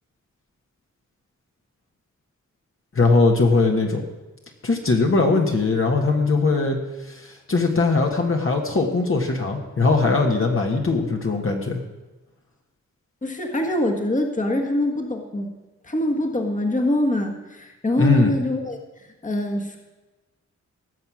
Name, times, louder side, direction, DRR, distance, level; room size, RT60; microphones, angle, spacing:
voice 1, 2.9-4.0 4.6-6.8 7.1-11.8 18.0-18.3, left 3 dB, 45° left, 1 dB, 1.5 m, -20 dB
voice 2, 13.2-15.6 15.8-19.8, left 1 dB, 25° left, 2 dB, 1.6 m, -24 dB
17.5 x 6.9 x 6.2 m, 1.1 s
wide cardioid pair, 100°, 30 cm